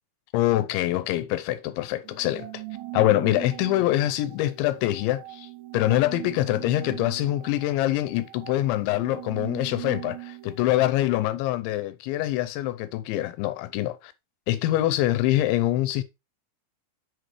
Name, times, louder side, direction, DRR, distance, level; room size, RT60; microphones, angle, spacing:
voice 1, 0.3-2.6 2.9-14.1 14.5-16.0, left 15 dB, 85° left, 2.8 m, -25 dB
sound 1, 2.0-10.7, right 20 dB, 75° right, 3.4 m, -40 dB
7.8 x 6.5 x 3.2 m
omnidirectional pair, 5.5 m